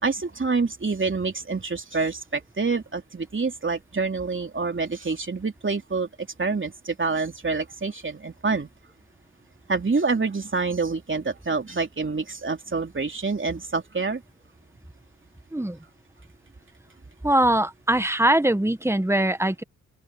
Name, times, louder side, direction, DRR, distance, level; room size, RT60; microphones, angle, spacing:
voice 1, 0.0-8.7 9.7-14.2, right 4 dB, 35° right, 3.3 m, -27 dB
voice 2, 17.2-19.6, right 1 dB, 10° right, 1.6 m, -22 dB
open air
supercardioid pair, 45°, 34 cm